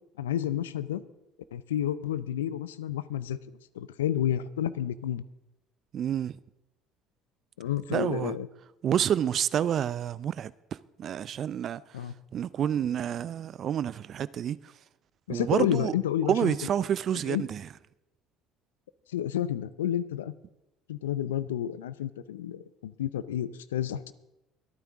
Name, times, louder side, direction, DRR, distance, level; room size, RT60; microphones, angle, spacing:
voice 1, 0.2-1.0 1.5-3.4 3.7-5.2 7.6-8.5 11.9-12.1 15.3-16.6 17.3-17.4 19.1-20.3 20.9-24.1, left 11 dB, 85° left, 0.5 m, -30 dB
voice 2, 5.9-6.4 7.9-8.4 8.8-11.8 12.3-14.6 15.3-15.9 16.3-17.6, right 9 dB, 50° right, 0.4 m, -28 dB
23.5 x 9.2 x 3.6 m
hypercardioid pair, 65°, 0 cm